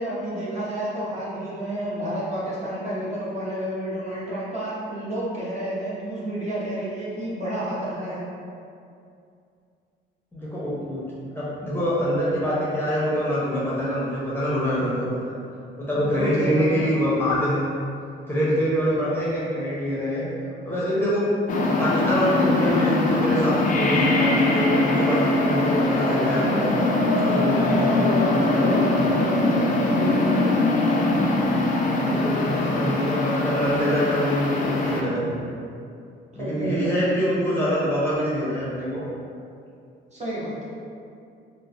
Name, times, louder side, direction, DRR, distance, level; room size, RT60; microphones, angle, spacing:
voice 1, 0.0-8.2 15.9-16.7 27.7-30.3 36.3-37.3 40.1-40.5, right 1 dB, 35° right, -8 dB, 0.9 m, -30 dB
voice 2, 10.3-11.0 11.3-15.1 15.8-17.7 18.3-20.3 20.6-21.4 21.8-26.9 27.3-29.2 30.9-31.5 32.0-35.5 36.4-39.0, equal, 10° left, -9 dB, 0.7 m, -25 dB
sound 1, 21.5-35.0, left 2 dB, 40° left, 0.4 m, -22 dB
3.0 x 2.1 x 2.4 m, 2.4 s
cardioid pair, 90°, 20 cm